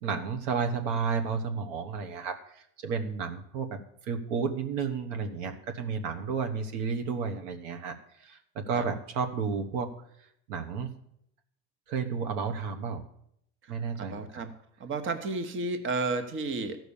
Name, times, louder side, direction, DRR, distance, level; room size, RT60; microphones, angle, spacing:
voice 1, 0.0-9.9 10.5-10.9 11.9-13.0 13.7-14.4, right 5 dB, 75° right, 6 dB, 1.3 m, -32 dB
voice 2, 13.6-14.5 14.8-16.9, right 3 dB, 35° right, 8 dB, 1.2 m, -33 dB
13.5 x 6.1 x 7.0 m, 0.74 s
supercardioid pair, 110°, 36 cm